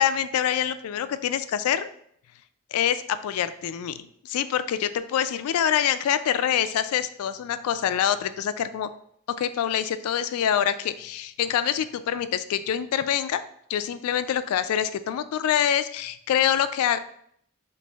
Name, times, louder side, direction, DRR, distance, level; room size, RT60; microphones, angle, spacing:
voice 1, 0.0-1.9 2.7-8.9 9.4-13.4 13.7-17.0, left 9 dB, 90° left, 15 dB, 0.3 m, -25 dB
7.1 x 2.5 x 2.3 m, 0.68 s
head